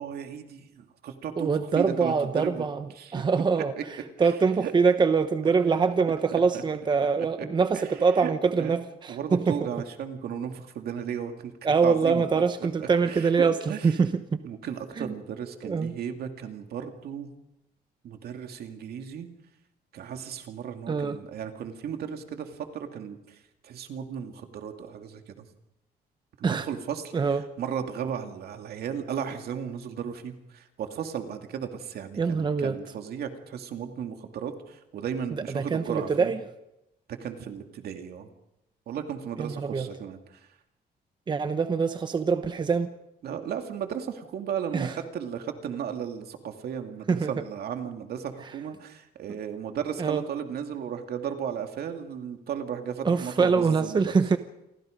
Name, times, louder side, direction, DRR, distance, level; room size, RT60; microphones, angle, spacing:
voice 1, 0.0-2.7 2.9-3.2 3.8-3.9 4.2-4.3 4.6-4.7 5.4-5.9 6.3-6.6 7.0-7.5 7.7-14.0 14.4-17.3 18.0-19.3 19.9-25.5 26.4-36.3 37.1-38.3 38.9-40.5 43.2-54.0, right 8 dB, 70° right, 5 dB, 2.5 m, -35 dB
voice 2, 1.4-2.8 3.1-3.7 4.2-9.6 11.6-13.5 13.8-14.4 15.0-15.1 15.6-16.0 20.9-21.2 26.4-26.7 27.1-27.5 32.2-32.8 35.5-36.4 39.4-39.9 41.3-42.9 44.7-44.9 47.1-47.3 50.0-50.2 53.0-54.4, right 5 dB, 25° right, 9 dB, 0.9 m, -24 dB
28.5 x 23.5 x 5.2 m, 0.89 s
cardioid pair, 145°, 17 cm